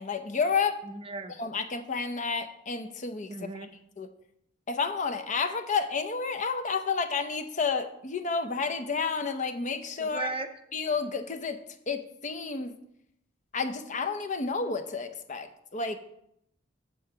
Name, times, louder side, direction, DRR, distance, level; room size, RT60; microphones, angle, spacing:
voice 1, 0.0-0.8 1.4-3.3 4.0-4.1 4.7-10.3 10.7-11.6 11.9-12.8 13.5-16.0, left 5 dB, 40° left, 8 dB, 0.6 m, -30 dB
voice 2, 0.8-1.3 3.3-3.7 10.0-10.5, right 3 dB, 30° right, 8 dB, 0.5 m, -36 dB
7.8 x 4.5 x 6.5 m, 0.77 s
head